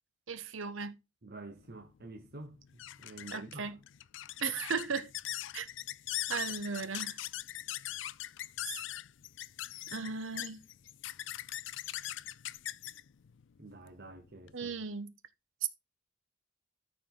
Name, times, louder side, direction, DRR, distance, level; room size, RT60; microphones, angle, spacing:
voice 1, 0.3-0.9 3.3-3.7 4.4-5.1 5.5-5.7 6.3-7.2 8.6-8.8 9.9-10.6 14.5-15.1 15.6-15.7, right 5 dB, 80° right, 1.2 m, -36 dB
voice 2, 1.2-2.6 3.0-3.8 13.6-14.7, right 2 dB, 50° right, 1.1 m, -48 dB
sound 1, 1.6-14.6, left 14 dB, 65° left, 0.4 m, -41 dB
13.5 x 5.1 x 3.9 m
head